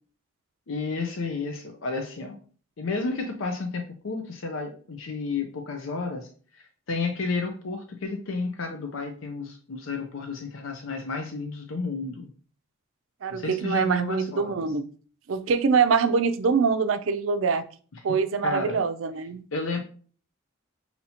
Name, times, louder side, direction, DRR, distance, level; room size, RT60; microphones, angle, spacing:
voice 1, 0.7-2.4 2.8-12.3 13.3-14.7 18.1-18.8 19.5-19.8, left 4 dB, 80° left, 4 dB, 0.6 m, -32 dB
voice 2, 13.2-14.8 15.3-17.6 18.0-19.4, right 5 dB, 80° right, 11 dB, 0.4 m, -24 dB
5.5 x 2.8 x 2.8 m, 0.42 s
head